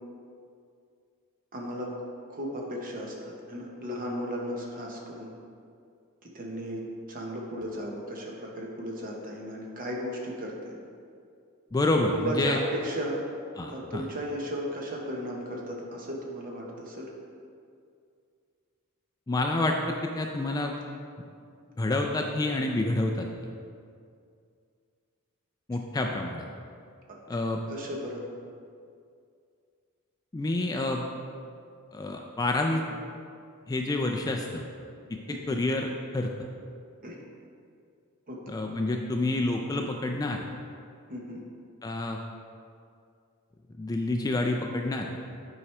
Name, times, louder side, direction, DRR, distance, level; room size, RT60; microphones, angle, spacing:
voice 1, 1.5-1.9 2.3-5.3 6.3-6.8 7.1-10.8 12.1-13.2 13.7-17.1 27.1-27.2 27.7-28.3 35.3-35.6 37.0-37.2 38.3-38.4 41.1-41.4, equal, 40° right, -1 dB, 1.0 m, -35 dB
voice 2, 11.7-12.6 13.6-14.1 19.3-20.8 21.8-23.3 25.7-26.4 27.3-27.6 30.3-31.0 31.9-32.8 33.7-34.6 35.1-36.3 38.5-40.4 41.8-42.2 43.8-45.1, left 2 dB, 15° left, 2 dB, 0.3 m, -28 dB
8.6 x 4.7 x 3.2 m, 2.3 s
head